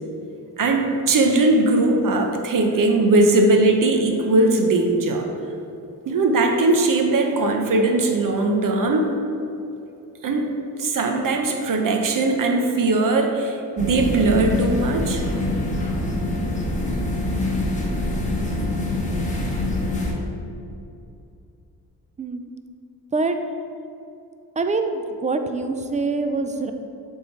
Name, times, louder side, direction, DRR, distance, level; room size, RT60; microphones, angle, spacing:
voice 1, 0.6-5.3 6.1-9.1 10.2-10.5 10.8-15.2, right 2 dB, 55° right, 3 dB, 0.9 m, -19 dB
sound 1, 13.8-20.1, left 2 dB, 20° left, 1.2 m, -25 dB
voice 2, 22.2-22.5 23.1-23.4 24.6-26.7, right 3 dB, 20° right, 7 dB, 0.4 m, -24 dB
6.8 x 3.8 x 4.5 m, 2.7 s
cardioid pair, 95°, 40 cm